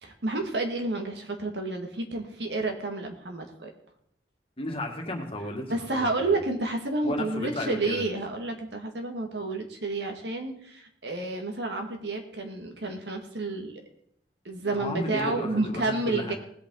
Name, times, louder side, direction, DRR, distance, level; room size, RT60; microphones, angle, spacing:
voice 1, 0.0-3.7 5.7-13.8 14.5-16.3, right 2 dB, 75° right, 4 dB, 2.0 m, -30 dB
voice 2, 4.6-6.4 7.0-8.1 14.6-16.3, left 1 dB, 30° left, 2 dB, 2.0 m, -34 dB
19.0 x 8.5 x 3.9 m, 0.68 s
head